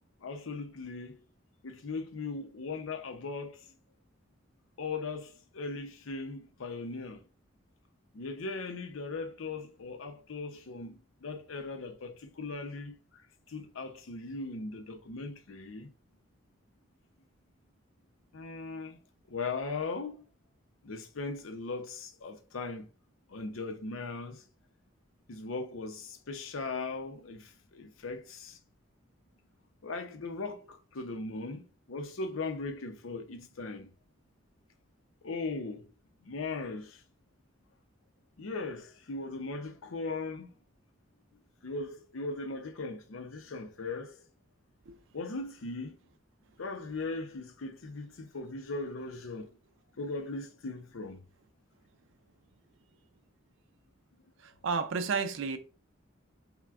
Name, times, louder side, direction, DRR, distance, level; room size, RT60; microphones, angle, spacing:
voice 1, 0.2-1.2 1.6-3.7 4.8-7.2 8.1-13.0 13.5-15.9 18.3-19.0 19.3-20.2 20.8-22.9 23.3-24.4 25.3-28.6 29.8-33.9 35.2-35.9 36.2-37.0 38.4-40.5 41.6-44.2 45.1-45.9 46.6-49.5 50.0-51.2, left 3 dB, 85° left, 0.6 m, -38 dB
voice 2, 54.4-55.6, right 5 dB, 65° right, 0.4 m, -32 dB
5.6 x 2.2 x 2.4 m
head